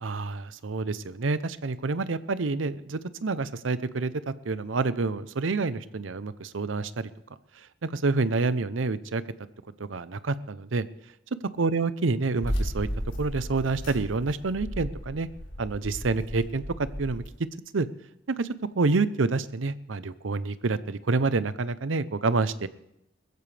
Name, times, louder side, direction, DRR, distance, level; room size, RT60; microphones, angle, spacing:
voice 1, 0.0-7.1 7.8-9.2 9.8-10.9 11.6-12.9 13.2-15.3 15.6-17.2 17.7-17.9 18.3-18.5 18.8-22.7, right 3 dB, 90° right, 14 dB, 0.7 m, -28 dB
sound 1, 12.4-17.3, equal, 85° left, 3.2 m, -34 dB
20.5 x 14.5 x 3.4 m, 0.81 s
head